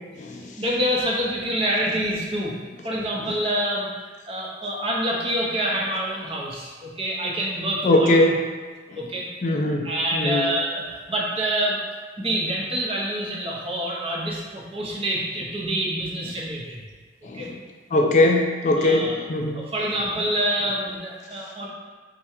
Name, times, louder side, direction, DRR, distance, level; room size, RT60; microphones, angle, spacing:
voice 1, 0.6-2.5 2.8-3.9 4.3-8.1 9.0-9.3 9.8-11.8 12.2-16.8 17.2-17.5 18.8-19.2 19.5-21.7, right 1 dB, 30° right, -3 dB, 0.6 m, -26 dB
voice 2, 7.8-8.4 9.4-10.5 17.2-17.5 17.9-19.6, left 2 dB, 40° left, 1 dB, 0.3 m, -20 dB
3.5 x 2.2 x 4.3 m, 1.5 s
head